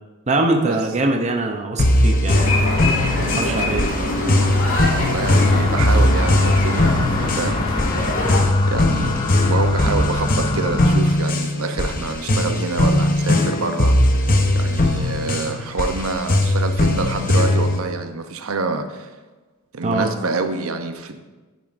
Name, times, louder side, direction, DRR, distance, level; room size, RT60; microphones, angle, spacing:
voice 1, 0.3-2.4 3.3-3.8 19.8-20.1, right 2 dB, 30° right, 3 dB, 0.6 m, -22 dB
sound 1, 1.8-17.8, left 1 dB, 40° left, 0.8 m, -19 dB
sound 2, 2.3-8.4, left 1 dB, 70° left, 2.4 m, -24 dB
voice 2, 3.3-4.3 4.9-8.2 8.7-19.1 19.7-21.2, right 3 dB, 75° right, 7 dB, 0.8 m, -27 dB
sound 3, 5.2-11.0, left 3 dB, 20° left, 0.3 m, -27 dB
10.5 x 9.1 x 2.6 m, 1.2 s
head